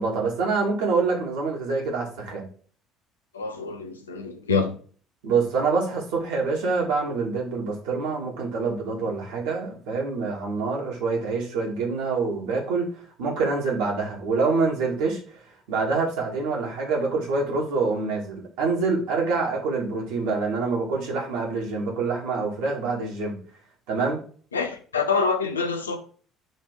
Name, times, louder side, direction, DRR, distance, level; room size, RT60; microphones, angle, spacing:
voice 1, 0.0-2.5 5.2-12.9 13.2-15.2 15.7-23.4 23.9-24.2, right 4 dB, 65° right, 2.2 m, -26 dB
voice 2, 3.3-4.8 24.5-26.0, left 4 dB, 85° left, 0.8 m, -26 dB
6.5 x 3.4 x 5.0 m
figure-of-eight pair, 55°, 0 cm